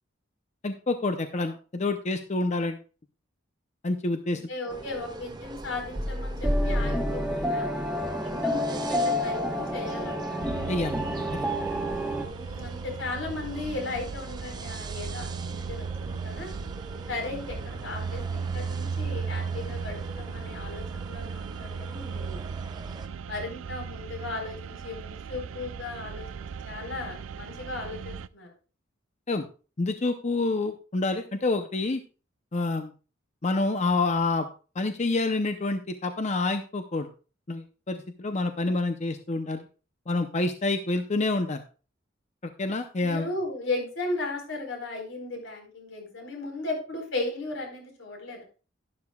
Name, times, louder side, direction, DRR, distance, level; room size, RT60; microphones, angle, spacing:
voice 1, 0.6-2.8 3.8-4.4 10.7-10.9 11.3-11.4 29.3-29.4 29.8-32.0 32.5-32.9 33.4-34.5 34.7-37.1 37.5-39.6 40.1-41.6 42.6-43.3, left 2 dB, 35° left, 8 dB, 0.7 m, -27 dB
voice 2, 4.3-7.7 8.2-10.4 12.3-16.5 17.1-22.4 23.3-28.5 43.0-48.4, left 2 dB, 75° left, 2 dB, 4.2 m, -36 dB
sound 1, 4.7-5.0 5.9-12.2, equal, 5° right, 1.2 m, -29 dB
sound 2, 4.7-23.1, right 2 dB, 20° right, 0.7 m, -42 dB
sound 3, 10.4-28.3, right 6 dB, 85° right, 0.4 m, -37 dB
12.0 x 11.5 x 2.3 m, 0.36 s
head